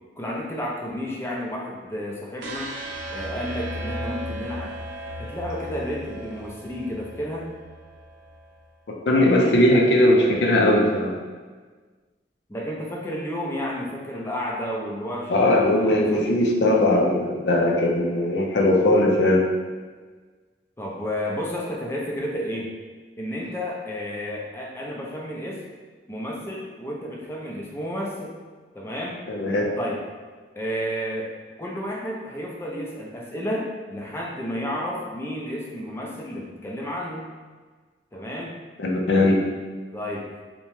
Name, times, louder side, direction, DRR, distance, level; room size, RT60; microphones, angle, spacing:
voice 1, 0.2-2.7 3.1-4.7 5.2-7.5 12.5-16.2 20.8-22.7 23.2-25.6 26.1-28.4 28.7-29.2 29.8-30.0 30.6-31.3 31.6-37.3 38.1-38.6 39.9-40.3, equal, 15° left, -3 dB, 0.4 m, -31 dB
sound 1, 2.4-8.5, equal, 85° right, 0.5 m, -35 dB
voice 2, 8.9-11.1 15.3-19.4 29.3-29.6 38.8-39.4, left 1 dB, 70° left, -1 dB, 0.5 m, -19 dB
2.8 x 2.1 x 3.0 m, 1.4 s
head